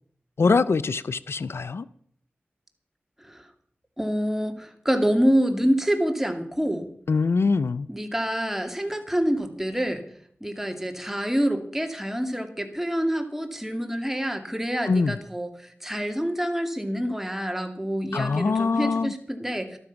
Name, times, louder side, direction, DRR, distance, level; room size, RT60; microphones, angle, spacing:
voice 1, 0.4-1.9 7.1-7.9 14.9-15.2 18.1-19.1, left 4 dB, 80° left, 0.5 m, -23 dB
voice 2, 4.0-6.8 7.9-10.0 10.4-15.5 15.8-19.8, equal, 5° right, 2.4 m, -26 dB
13.0 x 12.5 x 5.8 m
cardioid pair, 45°, 4 cm